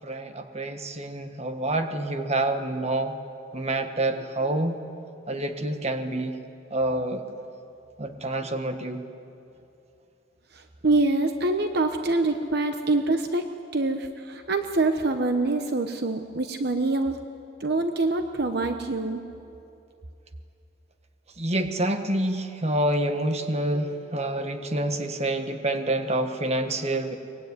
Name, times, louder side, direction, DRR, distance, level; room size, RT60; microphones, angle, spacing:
voice 1, 0.0-3.1 3.5-4.8 5.3-6.4 6.7-7.2 8.0-9.0 21.4-27.2, right 1 dB, 35° right, 7 dB, 1.5 m, -27 dB
voice 2, 10.5-13.5 13.7-17.2 17.6-19.2, right 2 dB, 55° right, 6 dB, 1.1 m, -25 dB
24.0 x 21.0 x 9.6 m, 2.7 s
head